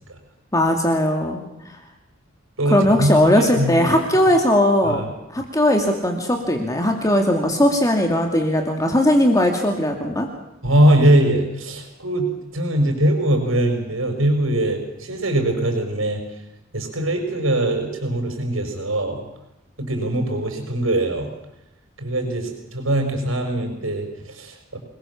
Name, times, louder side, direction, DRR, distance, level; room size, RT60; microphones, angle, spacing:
voice 1, 0.5-1.8 2.7-5.0 5.3-10.3, left 1 dB, 15° left, 2 dB, 2.5 m, -19 dB
voice 2, 2.6-3.9 4.8-5.1 10.6-16.2 16.7-19.2 19.8-21.3 22.0-24.8, right 1 dB, 85° right, 4 dB, 5.9 m, -21 dB
27.0 x 21.0 x 7.2 m, 0.91 s
head